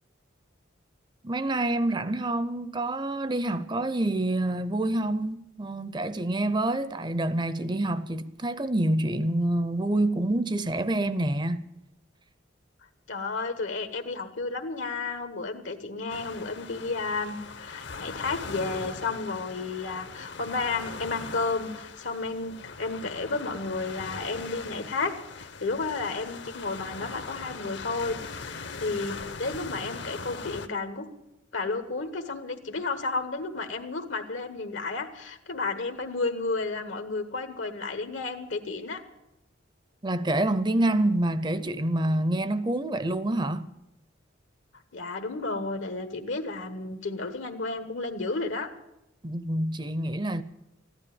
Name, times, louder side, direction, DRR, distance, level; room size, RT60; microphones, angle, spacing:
voice 1, 1.2-11.7 40.0-43.7 49.2-50.4, right 1 dB, 20° right, 0.6 m, -27 dB
voice 2, 13.1-25.1 25.4-31.1 31.5-39.0 44.9-48.7, left 3 dB, 75° left, 1.3 m, -32 dB
sound 1, 16.1-30.7, left 4 dB, 60° left, 0.9 m, -40 dB
15.0 x 11.5 x 8.7 m
head